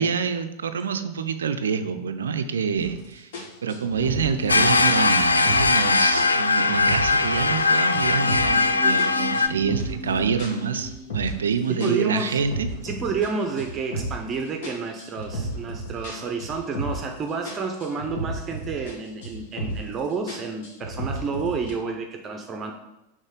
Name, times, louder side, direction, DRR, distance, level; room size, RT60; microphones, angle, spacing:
voice 1, 0.0-3.3 3.6-12.7, right 6 dB, 65° right, 9 dB, 0.5 m, -26 dB
sound 1, 2.8-3.0 3.3-5.9 6.2-7.7 7.9-8.6 9.0-11.5 11.8-14.3 14.6-17.2 17.4-19.0 19.2-19.9 20.3-21.7, right 1 dB, 55° left, 1.8 m, -33 dB
sound 2, 3.8-13.1 13.4-13.5, left 3 dB, ahead, 1.2 m, -40 dB
sound 3, 4.5-9.5, left 3 dB, 80° left, 0.3 m, -20 dB
voice 2, 11.7-12.4 12.8-22.7, right 5 dB, 25° right, 3 dB, 0.7 m, -30 dB
6.3 x 3.8 x 5.1 m, 0.97 s
figure-of-eight pair, 90°, 0 cm